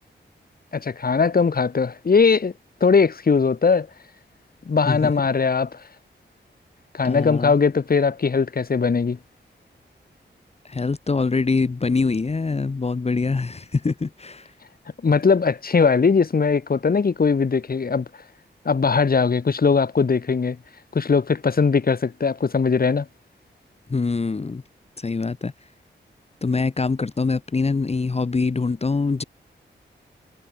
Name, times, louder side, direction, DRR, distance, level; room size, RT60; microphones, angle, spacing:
voice 1, 0.7-2.5 2.8-3.9 4.7-5.8 6.9-9.2 15.0-18.1 18.7-20.6 20.9-23.1, left 5 dB, 50° left, 2.3 m, -20 dB
voice 2, 7.0-7.5 10.6-14.5 23.9-24.6 25.0-25.5 26.4-29.2, left 4 dB, 35° left, 1.1 m, -24 dB
wide cardioid pair, 115°, 19 cm